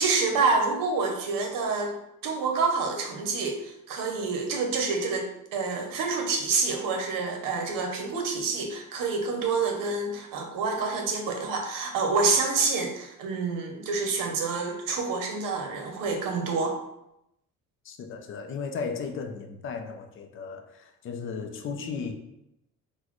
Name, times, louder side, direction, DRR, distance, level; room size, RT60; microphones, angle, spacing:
voice 1, 0.0-1.9 2.2-16.8, right 4 dB, 80° right, 3 dB, 0.8 m, -27 dB
voice 2, 17.8-22.1, left 5 dB, 40° left, 5 dB, 0.4 m, -35 dB
3.9 x 2.2 x 3.0 m, 0.84 s
cardioid pair, 135°, 33 cm